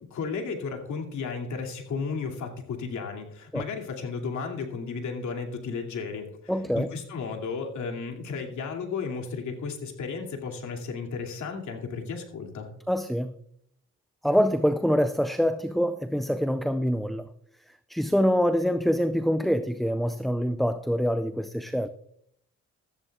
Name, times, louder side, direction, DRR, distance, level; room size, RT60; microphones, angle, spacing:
voice 1, 0.1-12.7, left 5 dB, 70° left, 2.7 m, -34 dB
voice 2, 6.5-6.9 12.9-13.3 14.2-17.3 17.9-21.9, equal, ahead, 0.5 m, -25 dB
14.5 x 14.0 x 2.4 m
cardioid pair, 90°, 30 cm